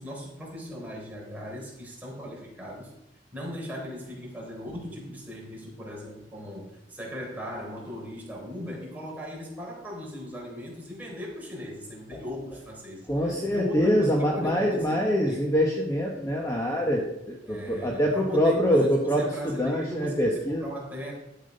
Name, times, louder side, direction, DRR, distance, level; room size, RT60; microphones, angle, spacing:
voice 1, 0.0-2.9 3.3-15.0 15.3-15.5 17.5-21.1, equal, 10° right, -3 dB, 3.7 m, -38 dB
voice 2, 13.1-20.7, equal, 15° left, -1 dB, 1.2 m, -25 dB
12.0 x 7.3 x 5.3 m, 0.87 s
head